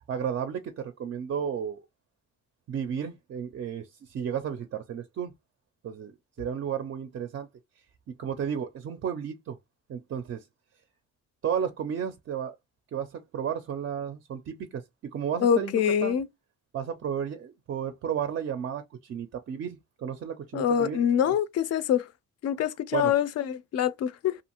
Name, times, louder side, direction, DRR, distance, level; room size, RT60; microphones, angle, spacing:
voice 1, 0.1-1.8 2.7-5.3 5.8-7.5 8.1-9.6 9.9-10.5 11.4-12.6 12.9-16.2 16.7-21.3 22.9-23.1, right 8 dB, 45° right, 0.4 m, -33 dB
voice 2, 15.4-16.3 20.5-22.1 22.4-24.4, left 9 dB, 55° left, 0.4 m, -25 dB
2.6 x 2.4 x 2.8 m
cardioid pair, 90°, 30 cm